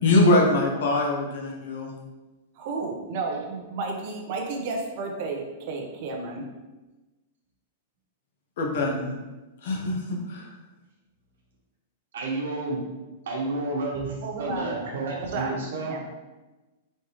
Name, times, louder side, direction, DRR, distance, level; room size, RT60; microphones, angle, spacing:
voice 1, 0.0-1.9 8.6-9.2 9.6-10.0 10.3-10.5, left 2 dB, 60° left, 0 dB, 0.9 m, -22 dB
voice 2, 2.6-6.5 14.2-16.0, right 3 dB, 45° right, 2 dB, 0.7 m, -32 dB
voice 3, 12.1-12.8 13.2-15.9, right 2 dB, 80° right, -2 dB, 1.3 m, -30 dB
4.3 x 3.4 x 3.0 m, 1.1 s
supercardioid pair, 170°, 0 cm